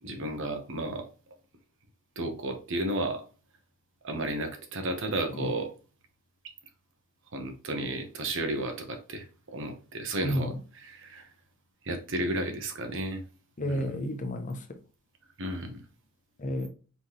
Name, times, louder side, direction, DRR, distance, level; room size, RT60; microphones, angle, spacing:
voice 1, 0.0-1.1 2.2-3.3 4.0-5.7 7.3-9.2 9.5-10.5 10.9-11.2 11.8-13.2 13.6-13.8 15.4-15.8, right 1 dB, 60° right, 1.1 m, -33 dB
voice 2, 10.2-10.6 13.6-14.8 16.4-16.7, equal, 35° left, 0.8 m, -31 dB
4.2 x 3.8 x 3.1 m
head